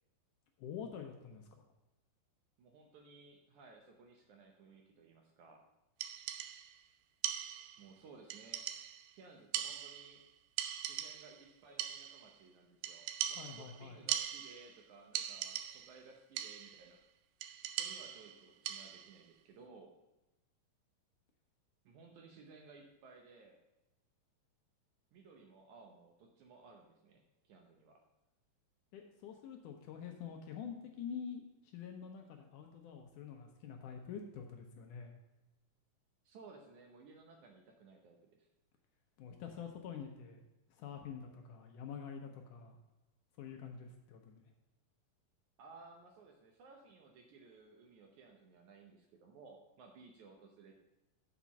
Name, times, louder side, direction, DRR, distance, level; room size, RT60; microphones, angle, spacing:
voice 1, 0.6-1.6 13.4-14.0 28.9-35.1 39.2-40.4 40.7-42.8 43.4-44.4, left 7 dB, 75° left, 3 dB, 2.0 m, -47 dB
voice 2, 2.6-5.6 7.8-8.7 9.1-10.2 10.8-17.0 17.7-19.9 21.9-23.6 25.1-28.0 36.3-38.5 45.6-50.7, right 4 dB, 70° right, 2 dB, 1.9 m, -58 dB
sound 1, 6.0-6.8 7.2-7.9 8.3-9.1 9.5-10.3 10.6-11.4 11.8-12.4 12.8-14.8 15.2-16.0 16.4-16.9 17.4-19.2, right 11 dB, 90° right, 2.4 m, -41 dB
7.3 x 5.0 x 7.0 m, 1.0 s
omnidirectional pair, 4.1 m